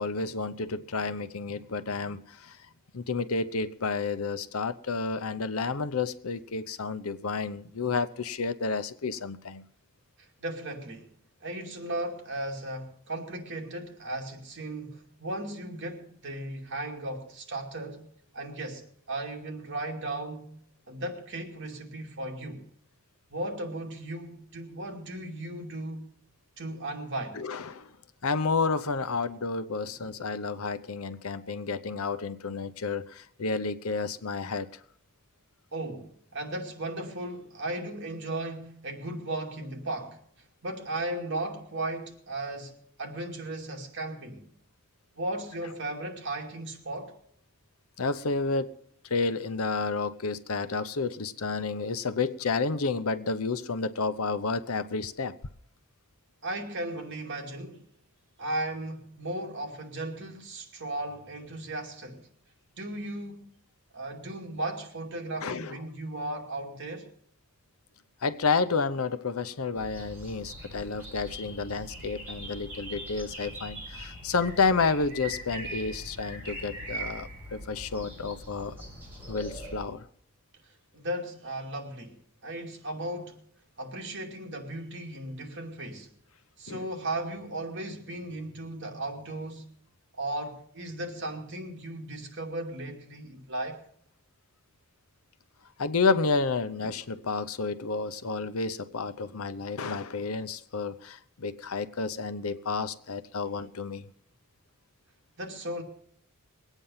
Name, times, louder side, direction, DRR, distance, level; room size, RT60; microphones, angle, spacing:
voice 1, 0.0-2.6 2.9-9.6 27.3-27.9 28.2-34.7 48.0-48.7 49.0-55.4 65.4-65.8 68.2-78.8 79.3-80.1 86.7-86.9 95.8-104.1, left 4 dB, 80° left, 0.8 m, -30 dB
voice 2, 10.2-11.1 11.4-18.1 18.3-20.6 20.9-22.6 23.3-26.0 26.6-27.4 35.7-40.2 40.6-42.7 43.0-44.5 45.2-47.1 56.4-57.8 58.4-62.3 62.8-63.5 63.9-67.1 80.9-83.4 83.8-86.1 86.6-89.7 90.1-93.8 105.4-105.8, right 1 dB, 55° right, 2.6 m, -36 dB
sound 1, 69.7-79.8, right 1 dB, 10° right, 5.7 m, -41 dB
21.5 x 9.1 x 5.6 m
head